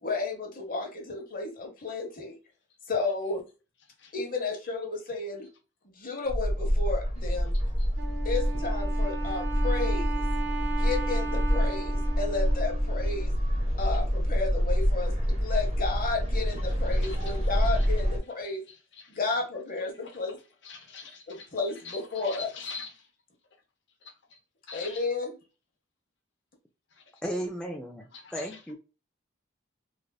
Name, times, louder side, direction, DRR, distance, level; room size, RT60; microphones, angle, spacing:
voice 1, 0.0-2.4 2.9-3.5 4.1-5.5 5.8-7.5 8.2-10.2 10.7-13.3 13.8-18.6 19.1-20.4 21.3-22.5 24.7-25.3, left 3 dB, 45° left, 1.0 m, -32 dB
sound 1, 6.3-18.2, equal, 35° right, 1.0 m, -27 dB
voice 2, 7.5-7.9 16.6-18.0 18.4-19.2 19.8-20.3 20.6-23.1 24.0-24.4 24.7-25.1 26.9-27.2 28.1-28.8, left 4 dB, 60° left, 0.7 m, -46 dB
Wind instrument woodwind instrument, 8.0-13.4, right 4 dB, 70° right, 0.9 m, -37 dB
voice 3, 27.2-28.8, equal, 5° left, 0.4 m, -35 dB
3.2 x 2.5 x 2.2 m
head